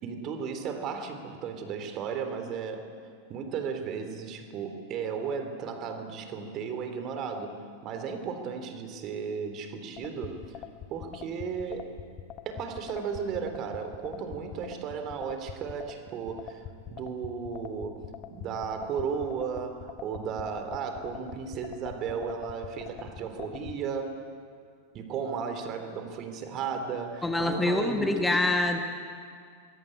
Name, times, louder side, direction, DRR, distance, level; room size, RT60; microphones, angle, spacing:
voice 1, 0.0-2.9 3.3-10.6 10.9-12.0 12.5-24.2 24.9-28.4, right 6 dB, 35° right, 7 dB, 3.5 m, -35 dB
sound 1, 10.0-23.8, left 11 dB, 35° left, 1.4 m, -42 dB
voice 2, 27.2-28.8, left 2 dB, 10° left, 5 dB, 1.7 m, -25 dB
24.5 x 22.5 x 8.9 m, 2.2 s
figure-of-eight pair, 90°, 0 cm